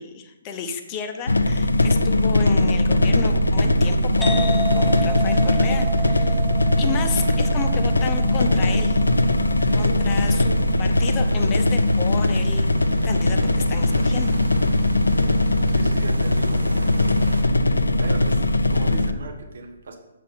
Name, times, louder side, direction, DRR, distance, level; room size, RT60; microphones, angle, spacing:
voice 1, 0.0-6.4 6.8-9.0 9.7-12.7 13.0-14.4, left 6 dB, 25° left, 6 dB, 0.9 m, -32 dB
sound 1, 1.3-19.1, left 1 dB, 80° left, 0.5 m, -20 dB
sound 2, 4.2-11.6, right 3 dB, ahead, 1.2 m, -33 dB
sound 3, 4.2-17.4, right 2 dB, 80° right, 0.9 m, -38 dB
voice 2, 15.7-16.8 18.0-20.0, right 3 dB, 60° right, 3 dB, 1.3 m, -37 dB
7.4 x 5.9 x 5.7 m, 1.0 s
figure-of-eight pair, 130°, 0 cm